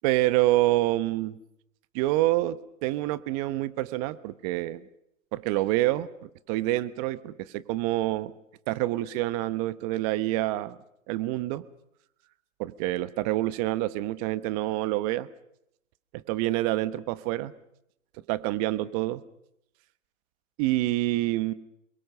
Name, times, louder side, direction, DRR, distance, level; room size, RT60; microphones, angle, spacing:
voice 1, 0.0-1.4 1.9-4.9 5.3-8.3 8.7-10.8 11.1-11.6 12.6-15.3 16.1-17.5 18.3-19.2 20.6-21.5, right 17 dB, 30° right, 16 dB, 1.0 m, -27 dB
27.5 x 22.5 x 6.8 m, 0.79 s
hypercardioid pair, 140°, 40 cm